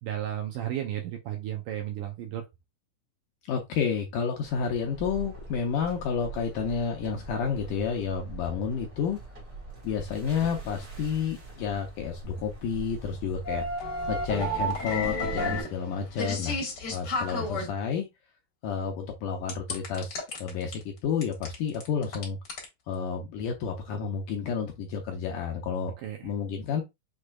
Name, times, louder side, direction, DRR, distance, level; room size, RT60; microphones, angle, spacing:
voice 1, 0.0-2.4 26.0-26.3, right 11 dB, 80° right, 1.8 m, -33 dB
voice 2, 3.5-9.2 9.8-13.6 14.1-16.6 16.9-18.1 18.6-22.4 22.9-25.9 26.2-26.8, left 6 dB, 80° left, 1.9 m, -30 dB
sound 1, 4.4-15.6, right 2 dB, 45° right, 1.0 m, -43 dB
sound 2, 13.4-17.7 19.5-20.7 21.2-22.6, left 1 dB, 55° left, 1.2 m, -31 dB
6.4 x 3.3 x 2.3 m
omnidirectional pair, 4.4 m